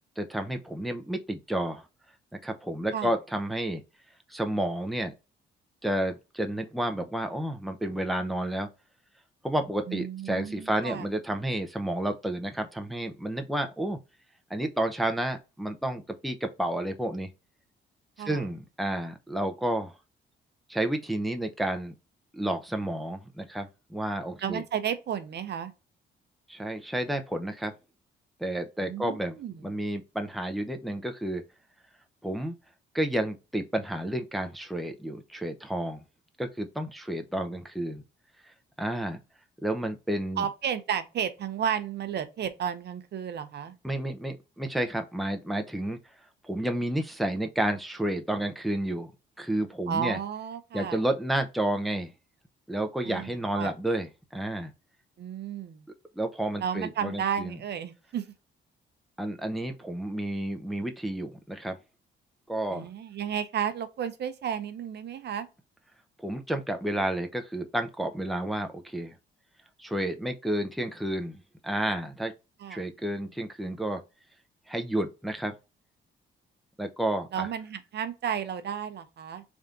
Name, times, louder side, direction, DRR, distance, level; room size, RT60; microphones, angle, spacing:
voice 1, 0.2-1.8 2.4-3.8 4.3-5.1 5.8-8.7 9.4-14.0 14.5-17.3 18.3-19.9 20.7-21.9 22.3-24.6 26.5-27.7 28.4-29.4 29.6-31.4 32.2-32.5 32.9-36.0 36.4-38.0 38.8-39.2 39.6-40.5 43.8-46.0 46.4-49.1 49.4-50.2 50.7-52.1 52.7-54.7 56.2-57.6 59.2-61.8 62.5-62.9 66.2-69.2 69.8-72.3 72.7-74.0 74.7-75.5 76.8-77.5, right 1 dB, ahead, 0.6 m, -31 dB
voice 2, 9.9-11.1 18.2-18.4 24.4-25.7 28.8-29.7 40.4-43.7 49.9-51.0 53.0-53.7 55.2-55.8 56.6-58.2 62.7-65.5 72.6-72.8 77.3-79.4, right 8 dB, 60° right, 0.7 m, -33 dB
3.5 x 2.6 x 3.7 m
cardioid pair, 90°, 20 cm